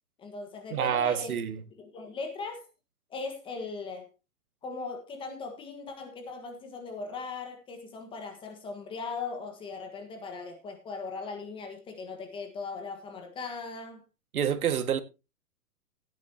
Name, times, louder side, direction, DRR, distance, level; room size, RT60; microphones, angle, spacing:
voice 1, 0.2-1.3 1.8-2.7 3.1-4.1 4.6-14.0, left 4 dB, 10° left, 1.4 m, -39 dB
voice 2, 0.7-1.6 14.3-15.0, right 8 dB, 70° right, 1.9 m, -27 dB
17.0 x 9.6 x 2.8 m
hypercardioid pair, 155°, 46 cm